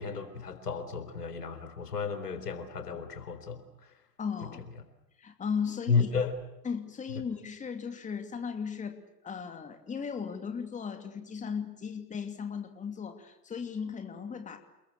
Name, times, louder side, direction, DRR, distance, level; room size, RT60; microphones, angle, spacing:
voice 1, 0.0-4.0 5.9-6.4, left 5 dB, 70° left, 10 dB, 4.1 m, -32 dB
voice 2, 4.2-4.6 5.2-6.1 6.6-9.0 9.2-14.6, left 6 dB, 15° left, 6 dB, 2.7 m, -36 dB
28.5 x 22.0 x 8.3 m, 0.92 s
figure-of-eight pair, 95°, 48 cm